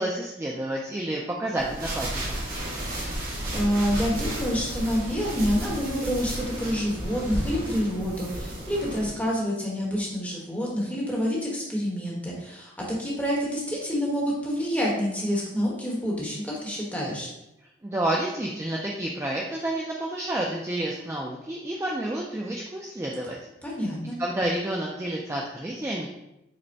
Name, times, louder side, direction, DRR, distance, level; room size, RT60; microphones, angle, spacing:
voice 1, 0.0-2.4 17.8-23.4 24.2-26.1, right 1 dB, 15° right, -2 dB, 0.3 m, -30 dB
sound 1, 1.6-9.1, right 1 dB, 50° right, 1.2 m, -32 dB
voice 2, 2.9-17.3 23.6-24.2, equal, 10° left, -4 dB, 1.0 m, -28 dB
5.0 x 2.1 x 4.5 m, 0.89 s
head